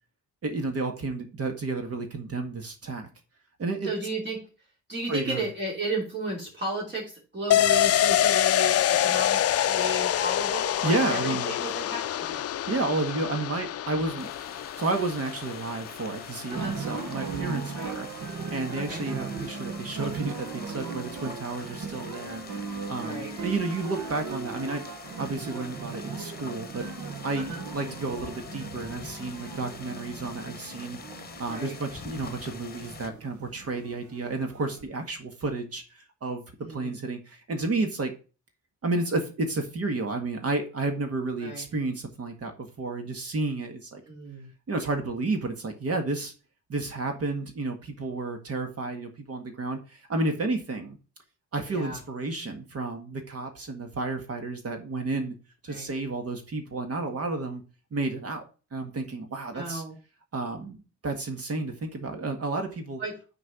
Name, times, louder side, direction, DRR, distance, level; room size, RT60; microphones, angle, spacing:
voice 1, 0.4-3.1 3.6-3.9 5.1-5.4 10.8-11.5 12.7-14.3 14.8-18.1 18.5-22.4 22.9-24.9 25.2-26.9 27.2-31.0 31.4-36.4 36.7-38.1 38.8-44.0 44.7-46.3 46.7-51.0 51.5-55.4 55.6-57.6 57.9-58.4 58.7-59.8 60.3-60.8 61.0-63.0, right 3 dB, 50° right, 5 dB, 1.7 m, -31 dB
voice 2, 3.8-4.5 4.9-12.4 16.5-16.8 17.7-17.9 18.7-19.0 23.0-23.3 27.3-27.7 31.5-31.7 36.6-37.0 41.4-41.7 44.0-44.5 51.7-52.0 55.7-55.9 59.5-60.0 63.0-63.1, right 1 dB, 35° right, -3 dB, 3.0 m, -34 dB
sound 1, 7.5-16.9 17.2-17.3, left 11 dB, 50° left, 0.5 m, -26 dB
sound 2, 14.2-33.1, left 5 dB, 30° left, 1.1 m, -45 dB
sound 3, 16.5-34.8, right 5 dB, 70° right, 1.4 m, -38 dB
6.3 x 4.8 x 6.0 m, 0.34 s
cardioid pair, 100°, 31 cm